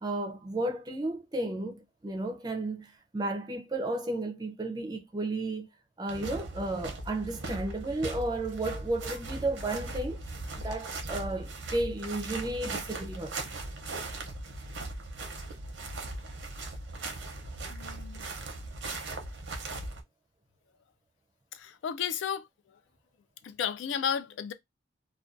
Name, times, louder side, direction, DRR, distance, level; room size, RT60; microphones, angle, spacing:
voice 1, 0.0-5.7 6.0-10.2 10.6-13.4, right 2 dB, 20° right, 0.4 m, -33 dB
sound 1, 6.1-20.0, right 2 dB, 85° right, 0.6 m, -39 dB
voice 2, 17.7-18.3 21.5-22.5 23.4-24.5, left 8 dB, 90° left, 0.3 m, -33 dB
2.4 x 2.2 x 2.4 m
head